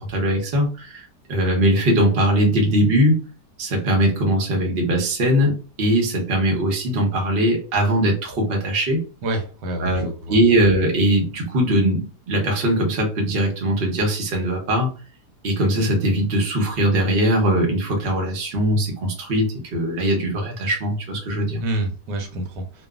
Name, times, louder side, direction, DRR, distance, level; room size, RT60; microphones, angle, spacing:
voice 1, 0.0-3.3 3.6-9.0 9.8-14.9 15.4-21.6, right 1 dB, 45° right, 0 dB, 0.8 m, -20 dB
voice 2, 9.2-10.4 21.6-22.9, right 2 dB, 85° right, 4 dB, 1.3 m, -28 dB
2.8 x 2.3 x 2.3 m, 0.35 s
omnidirectional pair, 1.8 m